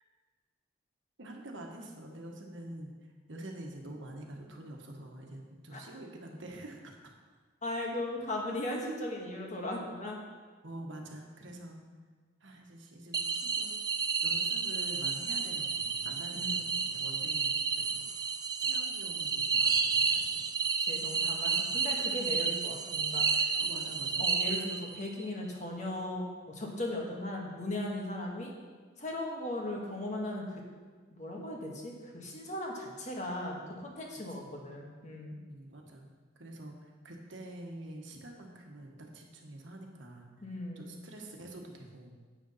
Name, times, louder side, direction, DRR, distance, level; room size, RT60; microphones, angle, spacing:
voice 1, 1.2-7.1 10.6-11.8 12.4-13.7 14.2-18.1 18.6-20.4 21.6-21.9 23.6-24.3 34.3-34.6 35.4-36.1 36.3-40.4 40.7-42.2, right 1 dB, 75° right, 1 dB, 1.4 m, -47 dB
voice 2, 7.6-10.2 16.4-16.7 20.8-23.5 24.2-28.5 29.0-30.5 31.1-35.4 40.4-40.9, left 1 dB, 40° left, -1 dB, 1.6 m, -38 dB
sound 1, 13.1-25.1, right 5 dB, 20° right, 0.3 m, -31 dB
8.6 x 6.7 x 5.6 m, 1.5 s
head